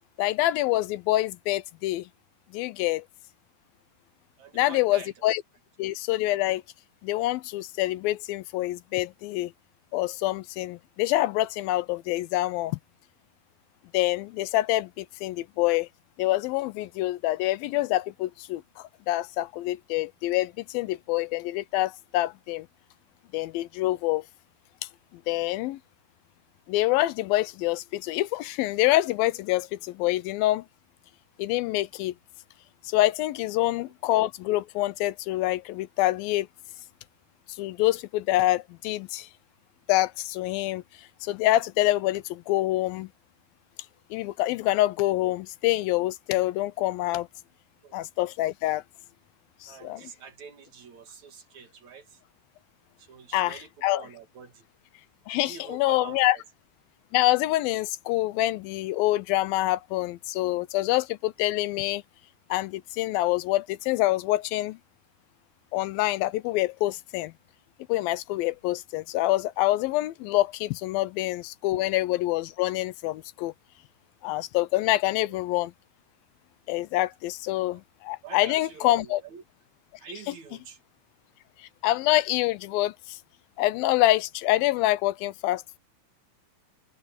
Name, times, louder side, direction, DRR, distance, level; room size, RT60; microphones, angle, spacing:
voice 1, 0.2-2.1 2.5-3.0 4.5-5.4 5.8-6.6 7.0-9.5 9.9-12.8 13.9-15.9 16.2-22.7 23.3-24.2 25.1-25.8 26.7-30.6 31.4-32.1 32.9-36.5 37.5-39.3 39.9-43.1 44.1-47.3 47.9-48.8 49.6-50.1 53.3-54.1 55.3-56.4 57.1-62.0 62.5-64.8 65.7-67.3 67.9-73.5 74.2-75.7 76.7-79.2 80.3-80.4 81.8-83.2 83.6-85.8, left 16 dB, 80° left, 2.4 m, -26 dB
voice 2, 4.4-5.1 47.8-47.9 49.7-52.0 53.0-54.6 55.3-56.4 75.3-75.4 77.7-77.8 78.2-79.4 80.0-80.8, right 7 dB, 55° right, 3.1 m, -45 dB
omnidirectional pair, 4.2 m